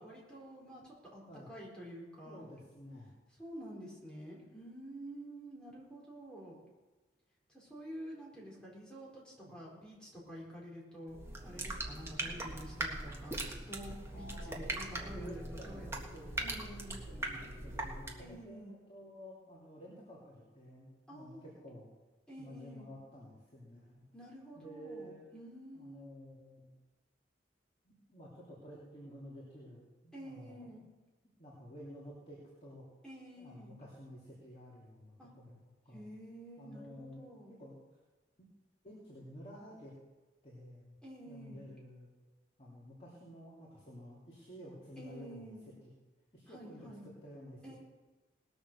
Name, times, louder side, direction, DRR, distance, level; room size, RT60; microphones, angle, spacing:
voice 1, 0.0-2.4 3.4-6.6 7.5-13.4 13.7-17.0 18.2-18.7 21.1-21.6 22.3-22.9 24.1-26.1 30.1-30.8 33.0-33.8 35.2-35.3 35.9-37.5 41.0-41.7 45.0-45.6 46.5-47.1 47.6-47.8, equal, 5° left, -5 dB, 4.5 m, -49 dB
voice 2, 2.3-3.1 9.4-9.5 14.1-14.6 14.9-16.5 17.1-21.9 22.3-24.0 24.6-25.3 25.7-26.7 27.8-30.8 31.4-32.8 33.4-35.6 35.8-36.1 36.6-37.3 37.6-37.8 38.4-38.5 38.8-39.9 40.4-40.9 41.3-42.1 42.6-45.5 45.8-45.9 46.3-47.7, equal, 35° left, -5 dB, 2.9 m, -51 dB
sound 1, 11.1-18.4, right 2 dB, 15° right, 1.6 m, -41 dB
19.0 x 7.1 x 6.9 m, 1.2 s
head